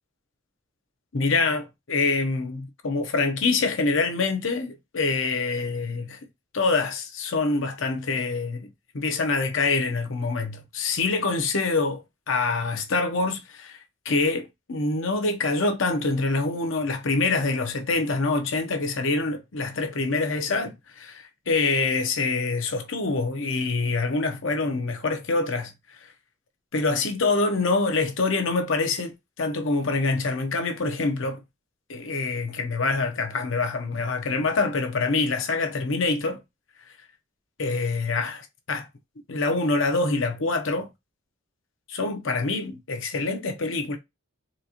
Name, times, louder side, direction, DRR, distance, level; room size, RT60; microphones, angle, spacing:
voice 1, 1.1-6.2 6.5-8.7 8.9-12.0 12.3-13.8 14.0-26.1 26.7-31.4 31.9-36.4 37.6-38.9 39.3-40.9 41.9-44.0, left 3 dB, 70° left, 0.8 m, -25 dB
4.1 x 2.4 x 2.8 m
head